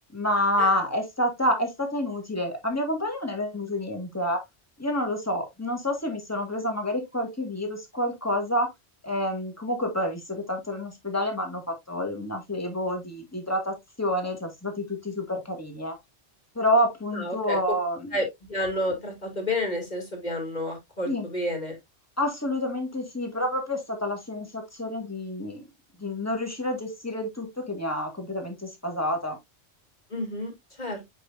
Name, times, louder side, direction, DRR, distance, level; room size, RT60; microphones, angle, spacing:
voice 1, 0.1-4.4 4.8-8.7 9.0-16.0 16.6-18.2 21.1-21.3 22.2-25.6 26.0-29.4, left 1 dB, 15° left, 2.0 m, -28 dB
voice 2, 17.1-17.6 18.1-21.8 30.1-31.0, left 1 dB, 40° left, 3.0 m, -30 dB
8.4 x 5.1 x 2.6 m
omnidirectional pair, 1.2 m